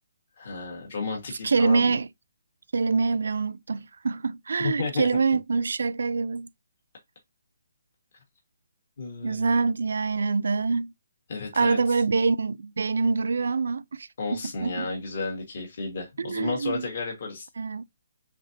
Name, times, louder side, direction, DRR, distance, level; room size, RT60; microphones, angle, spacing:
voice 1, 0.4-2.0 4.6-5.1 9.0-9.5 11.3-11.8 14.2-17.5, left 4 dB, 45° left, 1.4 m, -32 dB
voice 2, 1.4-2.1 2.7-6.5 9.2-10.9 11.6-14.9 16.2-16.9 17.6-17.8, right 4 dB, 70° right, 0.3 m, -25 dB
4.9 x 3.6 x 2.7 m
hypercardioid pair, 175°, 0 cm